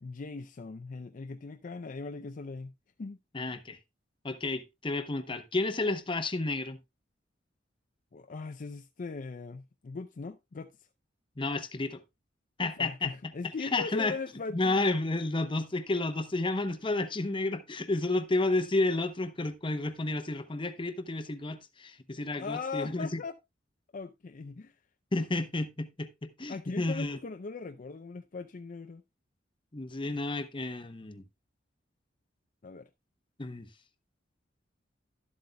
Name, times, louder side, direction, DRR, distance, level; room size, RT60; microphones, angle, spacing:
voice 1, 0.0-2.7 3.0-3.2 8.1-10.9 12.8-14.8 22.4-23.3 23.9-24.8 26.5-29.0 30.1-30.2 32.6-32.9, left 4 dB, 45° left, 0.4 m, -39 dB
voice 2, 3.3-3.8 4.2-6.8 11.4-12.0 12.6-13.3 13.6-14.2 14.5-23.2 25.1-27.2 29.7-31.2 33.4-33.7, left 2 dB, 25° left, 0.8 m, -31 dB
12.0 x 7.8 x 2.2 m
head